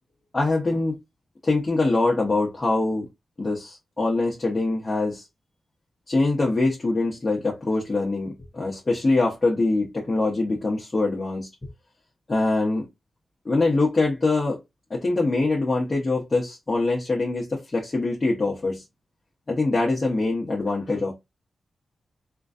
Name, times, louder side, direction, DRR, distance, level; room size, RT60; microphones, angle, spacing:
voice 1, 0.3-1.0 1.4-3.1 3.4-5.2 6.1-11.5 12.3-12.9 13.4-14.6 14.9-18.8 19.5-21.1, left 2 dB, 25° left, 0.9 m, -23 dB
3.7 x 2.6 x 2.4 m
wide cardioid pair, 130°, 0 cm